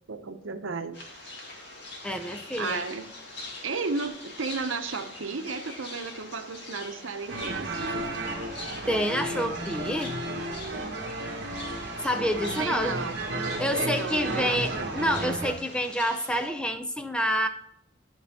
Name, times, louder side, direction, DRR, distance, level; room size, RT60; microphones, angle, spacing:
voice 1, 0.1-1.3 2.6-3.1 3.6-8.0 12.6-13.2 13.7-15.1, right 4 dB, 85° right, 8 dB, 0.8 m, -34 dB
sound 1, 0.9-16.5, left 2 dB, 60° left, 2.1 m, -43 dB
voice 2, 2.0-2.8 8.9-10.1 12.0-13.0 13.6-17.5, equal, 5° left, 8 dB, 0.5 m, -28 dB
sound 2, 7.3-15.5, right 2 dB, 55° right, 1.3 m, -33 dB
11.0 x 5.6 x 3.6 m, 0.75 s
head